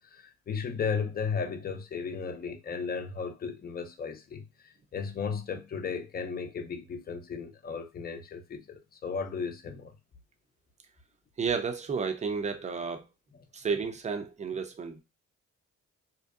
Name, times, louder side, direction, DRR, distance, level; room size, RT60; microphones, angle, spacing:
voice 1, 0.1-4.4 4.9-9.9, left 6 dB, 30° left, 0.5 m, -35 dB
voice 2, 11.4-13.1 13.5-15.0, right 5 dB, 25° right, 0.5 m, -32 dB
2.6 x 2.1 x 2.3 m
cardioid pair, 90°, 30 cm